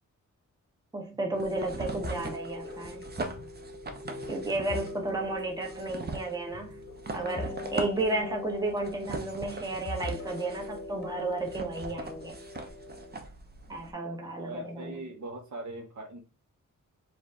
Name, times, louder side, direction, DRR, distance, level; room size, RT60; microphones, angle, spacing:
voice 1, 0.9-3.0 4.3-6.8 7.1-12.4 13.7-14.9, right 2 dB, 10° right, 1.0 m, -33 dB
sound 1, 1.1-13.1, left 2 dB, 20° left, 1.3 m, -42 dB
sound 2, 1.3-13.9, right 3 dB, 30° right, 0.7 m, -41 dB
sound 3, 2.0-3.6 3.8-5.4 5.7-5.9 6.5-7.7 7.9-8.0 9.2-11.3 11.9-12.7, left 1 dB, 35° left, 0.7 m, -43 dB
voice 2, 14.4-16.2, right 1 dB, 65° right, 1.2 m, -40 dB
4.4 x 2.7 x 3.6 m
wide cardioid pair, 95°, 31 cm